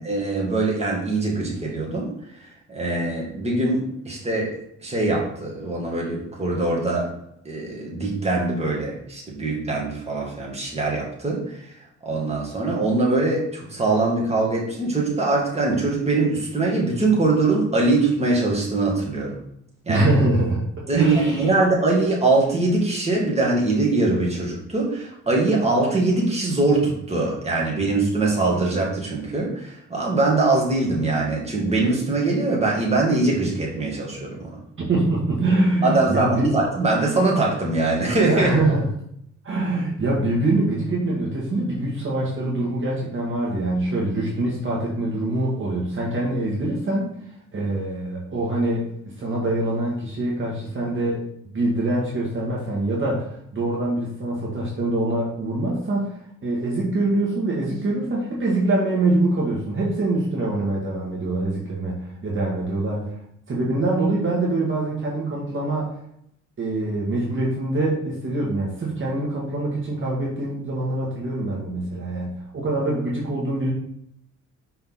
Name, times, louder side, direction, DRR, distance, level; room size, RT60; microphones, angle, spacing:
voice 1, 0.1-2.1 2.7-4.5 4.8-7.1 7.5-11.7 12.0-19.4 19.9-20.1 20.9-34.5 35.8-38.5, right 2 dB, 20° right, -3 dB, 2.1 m, -22 dB
voice 2, 19.9-20.6 20.9-21.5 34.8-36.5 38.3-38.9 39.4-47.1 47.5-48.9 49.2-51.2 51.5-56.1 56.4-63.0 63.5-65.9 66.6-73.7, right 2 dB, 40° right, -4 dB, 1.7 m, -24 dB
5.6 x 4.2 x 4.1 m, 0.73 s
cardioid pair, 90°, 30 cm